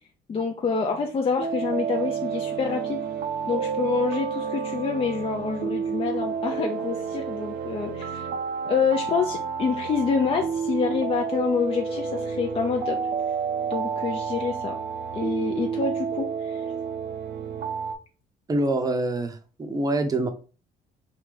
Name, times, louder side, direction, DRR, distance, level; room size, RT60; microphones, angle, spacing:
voice 1, 0.3-3.0 3.5-8.3 8.7-13.0 13.7-14.8 15.1-16.7, left 5 dB, 35° left, 2 dB, 0.5 m, -27 dB
sound 1, 1.4-17.9, right 6 dB, 75° right, 0.7 m, -30 dB
voice 2, 18.5-20.3, right 2 dB, 20° right, 6 dB, 0.7 m, -25 dB
3.3 x 2.7 x 3.7 m, 0.35 s
cardioid pair, 110°, 17 cm